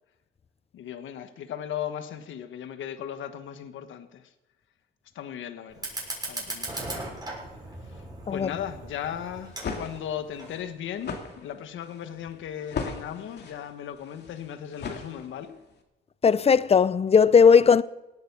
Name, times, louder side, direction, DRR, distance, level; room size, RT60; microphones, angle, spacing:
voice 1, 0.7-4.3 5.1-5.9 6.3-7.3 7.8-8.0 8.3-15.6, left 9 dB, 75° left, 1.4 m, -37 dB
Fire, 5.7-10.7, right 2 dB, 20° right, 6.7 m, -38 dB
sound 1, 9.3-15.6, left 5 dB, 60° left, 2.6 m, -38 dB
voice 2, 16.2-17.8, left 6 dB, 30° left, 0.6 m, -17 dB
18.5 x 9.4 x 7.1 m
cardioid pair, 90°, 20 cm